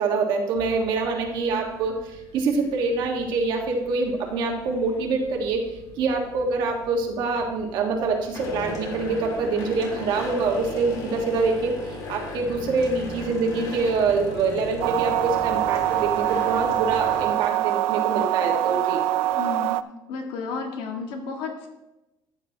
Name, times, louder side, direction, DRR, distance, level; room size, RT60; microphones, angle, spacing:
voice 1, 0.0-5.6 6.0-19.0, right 4 dB, 55° right, 1 dB, 1.6 m, -25 dB
sound 1, 0.6-17.3, left 2 dB, 45° left, 2.0 m, -38 dB
sound 2, 14.8-19.8, right 14 dB, 90° right, 0.4 m, -24 dB
voice 2, 19.3-19.8 20.1-21.7, left 4 dB, 70° left, 3 dB, 1.8 m, -32 dB
14.0 x 8.1 x 2.9 m, 1.0 s
cardioid pair, 160°, 9 cm